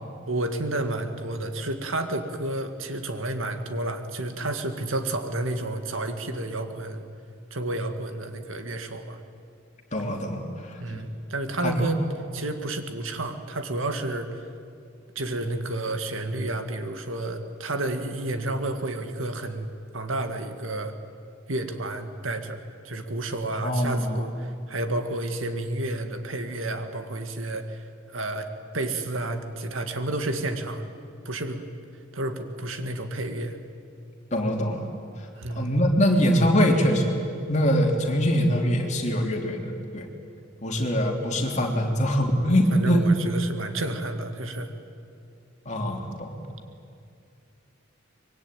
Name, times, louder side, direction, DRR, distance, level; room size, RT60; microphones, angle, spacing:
voice 1, 0.3-7.1 7.5-9.2 10.8-12.0 12.3-14.4 15.2-19.7 19.9-20.9 21.5-22.6 22.8-27.8 28.1-28.5 28.7-30.9 31.3-31.6 32.1-33.6 35.4-35.7 42.7-44.7, right 2 dB, 80° right, 7 dB, 2.1 m, -30 dB
voice 2, 9.9-10.4 10.9-11.0 11.6-11.9 23.6-24.2 34.3-34.8 35.5-37.1 37.5-40.1 40.6-43.0 45.6-46.3, equal, 35° left, 2 dB, 3.2 m, -23 dB
24.5 x 22.5 x 9.2 m, 2.4 s
head